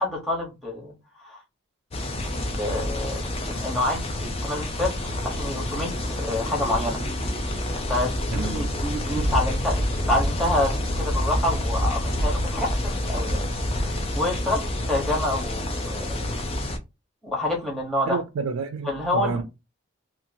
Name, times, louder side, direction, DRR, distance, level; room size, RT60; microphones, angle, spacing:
voice 1, 0.0-1.4 2.3-3.2 3.5-7.0 7.9-13.4 13.7-16.2 17.2-18.2 18.8-19.4, left 1 dB, ahead, 1.0 m, -28 dB
sound 1, 1.9-16.8, left 1 dB, 25° left, 0.4 m, -27 dB
voice 2, 8.3-8.7 18.1-19.4, right 4 dB, 90° right, 0.4 m, -29 dB
2.8 x 2.4 x 2.6 m
head